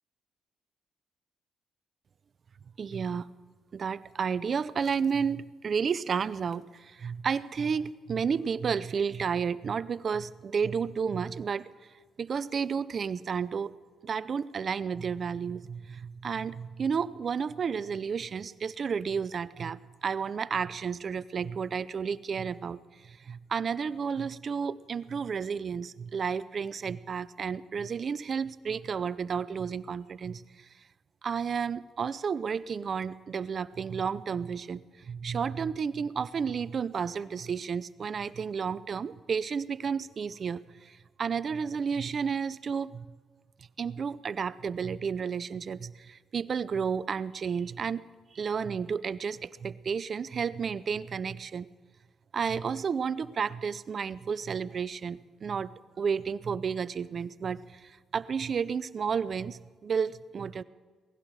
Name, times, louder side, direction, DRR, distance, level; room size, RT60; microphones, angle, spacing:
voice 1, 2.8-3.3 3.7-11.7 12.2-13.7 14.0-30.7 31.2-43.1 43.8-48.0 48.3-51.7 52.3-60.6, right 6 dB, 50° right, 16 dB, 0.5 m, -32 dB
19.0 x 16.0 x 4.8 m, 1.5 s
cardioid pair, 85°, 0 cm